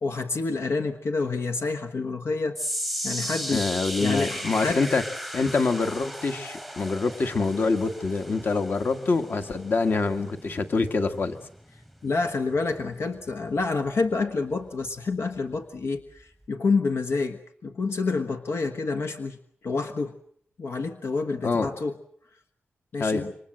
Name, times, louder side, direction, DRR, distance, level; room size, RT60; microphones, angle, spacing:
voice 1, 0.0-2.6 3.0-3.6 4.0-4.8 12.0-19.4 19.6-20.1 20.6-21.9 22.9-23.3, left 4 dB, 80° left, 6 dB, 1.4 m, -28 dB
sound 1, 2.5-14.9 15.2-15.5 16.2-16.3, equal, 5° left, 1.0 m, -37 dB
voice 2, 3.5-5.0 5.3-11.4 21.4-21.7 23.0-23.3, left 3 dB, 50° left, 7 dB, 1.8 m, -25 dB
27.5 x 24.5 x 7.7 m, 0.64 s
wide cardioid pair, 160°, 4 cm